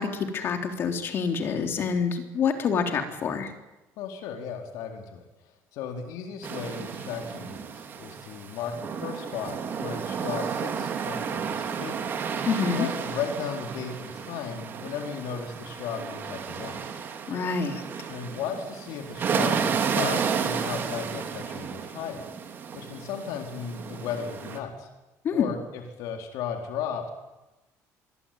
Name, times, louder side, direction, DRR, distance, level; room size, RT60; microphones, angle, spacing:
voice 1, 0.0-3.5 12.5-12.9 17.3-17.8 25.2-25.5, left 6 dB, 40° left, 5 dB, 3.6 m, -27 dB
voice 2, 4.0-5.2 5.7-8.7 9.0-16.8 18.1-22.3 22.7-24.9 25.3-27.1, left 7 dB, 75° left, 3 dB, 4.1 m, -35 dB
sound 1, 6.4-24.6, right 6 dB, 35° right, 3.3 m, -32 dB
25.0 x 22.5 x 9.3 m, 1.0 s
cardioid pair, 160°, 6 cm